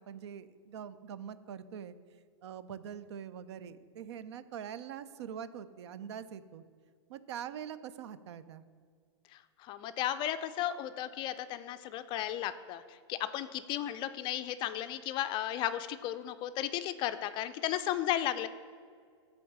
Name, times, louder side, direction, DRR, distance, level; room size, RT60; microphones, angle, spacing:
voice 1, 0.0-1.9 2.4-6.6 7.1-8.6, right 8 dB, 65° right, 14 dB, 0.5 m, -44 dB
voice 2, 9.6-12.8 13.1-18.5, left 12 dB, 30° left, 11 dB, 0.4 m, -34 dB
8.4 x 3.5 x 6.7 m, 2.1 s
hypercardioid pair, 120°, 15 cm